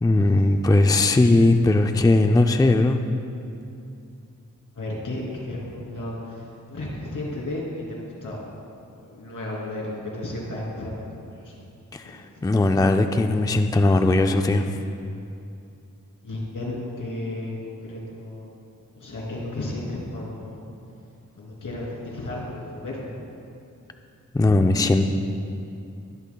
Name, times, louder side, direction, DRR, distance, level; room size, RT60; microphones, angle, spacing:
voice 1, 0.0-3.0 11.9-12.1 12.4-14.8 24.3-25.1, left 2 dB, 10° left, 6 dB, 0.4 m, -19 dB
voice 2, 4.7-8.4 8.9-11.6 12.1-12.6 16.2-18.5 18.9-20.7 21.3-23.2, left 1 dB, 80° left, -4 dB, 3.1 m, -34 dB
21.0 x 12.0 x 2.3 m, 2.6 s
wide cardioid pair, 110°, 31 cm